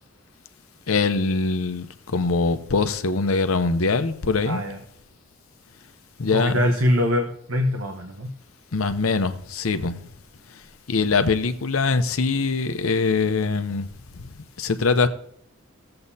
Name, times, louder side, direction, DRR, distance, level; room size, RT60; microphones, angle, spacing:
voice 1, 0.9-4.6 6.2-6.6 8.7-10.0 10.5-10.6 10.9-13.9 14.2-15.1, left 4 dB, 80° left, 0.7 m, -23 dB
voice 2, 4.4-4.8 6.3-8.3, left 1 dB, 80° right, 1.0 m, -23 dB
18.5 x 7.7 x 2.8 m
head